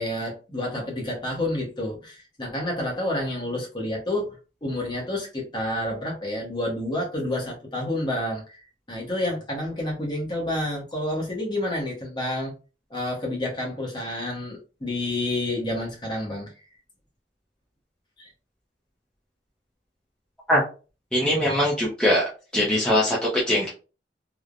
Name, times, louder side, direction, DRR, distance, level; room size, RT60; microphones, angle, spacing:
voice 1, 0.0-4.4 4.6-8.6 8.9-12.5 12.9-16.5 18.2-18.3, left 1 dB, 25° left, -1 dB, 0.9 m, -29 dB
voice 2, 21.1-22.2 22.5-23.7, left 1 dB, 5° left, -6 dB, 0.5 m, -21 dB
3.2 x 2.0 x 2.4 m, 0.34 s
head